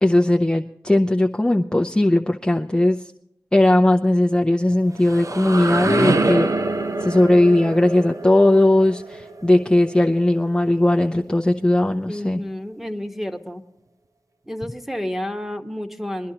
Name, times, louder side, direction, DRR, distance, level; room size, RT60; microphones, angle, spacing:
voice 1, 0.0-3.0 3.5-6.5 7.0-12.4, left 1 dB, 10° left, 1 dB, 0.7 m, -18 dB
sound 1, 4.7-10.5, right 2 dB, 50° right, 0.8 m, -25 dB
voice 2, 12.1-13.6 14.5-16.3, left 1 dB, 5° right, 6 dB, 1.3 m, -30 dB
22.5 x 11.0 x 2.9 m, 0.76 s
wide cardioid pair, 50°, 7 cm